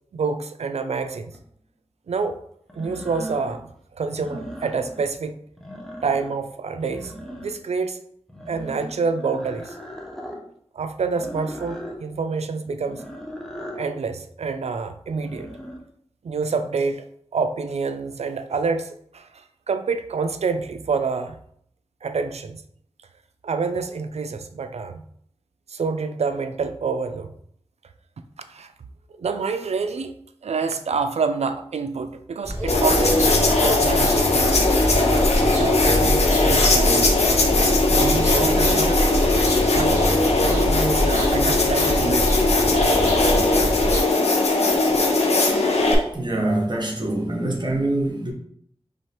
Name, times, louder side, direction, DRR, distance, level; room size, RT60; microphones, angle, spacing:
voice 1, 0.1-1.3 2.1-2.4 2.8-5.4 6.0-7.1 7.4-8.0 8.5-9.8 10.7-13.0 13.8-15.5 16.2-17.0 17.3-21.4 22.0-22.6 23.4-25.0 25.7-27.3 28.5-28.7 29.2-30.1 30.4-39.0 39.7-42.4 42.7-42.9, right 4 dB, 90° right, 9 dB, 0.4 m, -27 dB
sound 1, 1.3-1.4 2.7-3.6 4.1-5.1 5.5-6.4 6.8-7.7 8.3-10.4 11.1-12.0 12.8-13.9 15.1-15.8, equal, 5° left, 0.8 m, -38 dB
sound 2, 32.4-44.0, equal, 25° right, 1.5 m, -24 dB
sound 3, 32.7-45.9, left 2 dB, 90° left, 0.7 m, -19 dB
voice 2, 46.1-48.3, right 1 dB, 45° right, -1 dB, 1.0 m, -24 dB
4.9 x 3.4 x 2.9 m, 0.68 s
wide cardioid pair, 80°, 11 cm